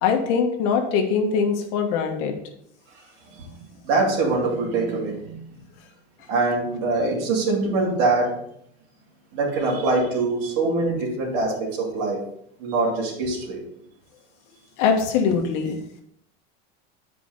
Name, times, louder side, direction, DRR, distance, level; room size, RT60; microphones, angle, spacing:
voice 1, 0.0-2.4 14.8-15.8, left 6 dB, 50° left, 4 dB, 1.4 m, -22 dB
voice 2, 3.8-5.4 6.3-8.3 9.3-12.2 12.6-13.6, right 3 dB, 55° right, -3 dB, 2.7 m, -23 dB
8.4 x 5.0 x 4.0 m, 0.72 s
supercardioid pair, 160°, 32 cm